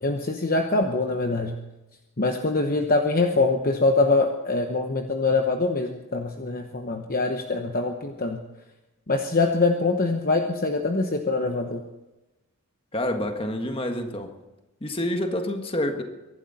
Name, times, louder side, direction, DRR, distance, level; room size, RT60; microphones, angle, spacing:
voice 1, 0.0-1.6 2.2-8.4 9.1-11.8, left 3 dB, 40° left, 4 dB, 1.0 m, -24 dB
voice 2, 12.9-14.3 14.8-16.0, left 1 dB, 25° left, 5 dB, 1.6 m, -27 dB
24.0 x 11.5 x 4.2 m, 1.1 s
head